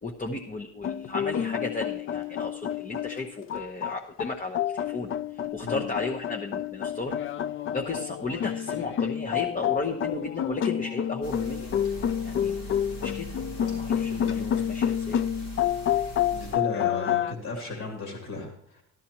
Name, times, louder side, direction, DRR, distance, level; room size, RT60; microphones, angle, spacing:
voice 1, 0.0-7.2 7.7-11.7 12.2-12.6 12.9-15.2 15.9-16.1 17.5-17.9, left 3 dB, 25° left, 1 dB, 0.9 m, -35 dB
sound 1, 0.8-17.3, left 10 dB, 45° left, 0.4 m, -29 dB
sound 2, 11.2-16.5, right 2 dB, 80° left, 5.0 m, -41 dB
voice 2, 14.1-14.4 16.3-18.8, left 3 dB, 60° left, 1 dB, 2.6 m, -35 dB
13.0 x 12.5 x 3.0 m, 0.68 s
cardioid pair, 90°, 30 cm